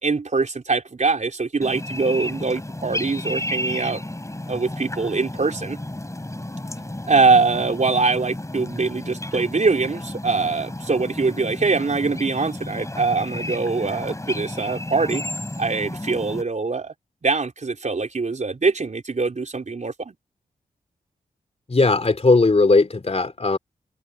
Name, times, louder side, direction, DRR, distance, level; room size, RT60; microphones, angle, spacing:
voice 1, 0.0-4.0 4.5-5.8 7.1-15.2 15.6-16.9 17.2-20.1, right 4 dB, 50° right, 4.1 m, -23 dB
sound 1, 1.6-16.4, left 1 dB, 20° left, 4.9 m, -32 dB
voice 2, 21.7-23.6, left 3 dB, 40° left, 3.1 m, -18 dB
cardioid pair, 45°, 16 cm